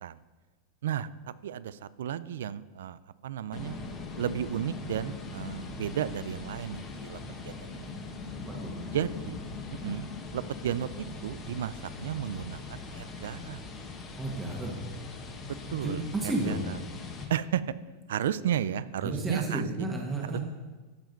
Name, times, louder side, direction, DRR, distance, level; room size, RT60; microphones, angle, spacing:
voice 1, 1.4-3.8 4.2-7.9 8.9-9.4 9.7-10.1 10.3-13.7 15.7-16.8 17.3-17.7 18.1-19.6, right 10 dB, 90° right, 17 dB, 0.4 m, -33 dB
sound 1, 3.5-17.2, left 3 dB, 30° left, 1.5 m, -41 dB
voice 2, 14.2-14.7 15.8-16.6 19.0-20.4, right 2 dB, 15° right, -1 dB, 1.6 m, -32 dB
13.5 x 5.0 x 5.3 m, 1.3 s
supercardioid pair, 145°, 0 cm